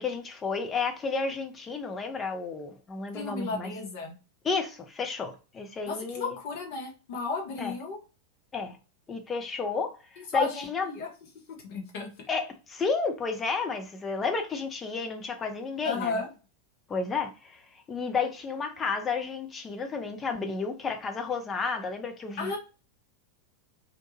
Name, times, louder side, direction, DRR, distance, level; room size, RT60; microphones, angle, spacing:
voice 1, 0.0-3.8 4.4-6.4 7.6-7.7 8.5-8.8 9.1-10.9 12.3-16.2 16.9-22.6, left 4 dB, 20° left, 0.5 m, -32 dB
voice 2, 3.1-4.2 5.9-8.0 10.2-11.1 11.6-12.1 15.8-16.3 22.4-22.6, left 4 dB, 50° left, 0.7 m, -33 dB
2.6 x 2.2 x 2.9 m
figure-of-eight pair, 90°, 0 cm